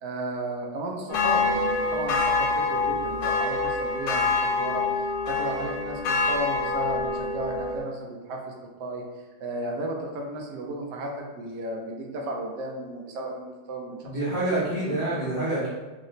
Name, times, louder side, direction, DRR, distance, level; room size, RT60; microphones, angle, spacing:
voice 1, 0.0-4.9 5.3-9.0 9.4-14.0 14.6-15.0, right 1 dB, 75° right, 0 dB, 1.0 m, -34 dB
sound 1, 1.1-7.8, left 3 dB, 90° left, 1.5 m, -26 dB
voice 2, 14.0-15.7, right 1 dB, 60° left, -9 dB, 0.5 m, -27 dB
3.9 x 2.1 x 3.8 m, 1.2 s
omnidirectional pair, 2.3 m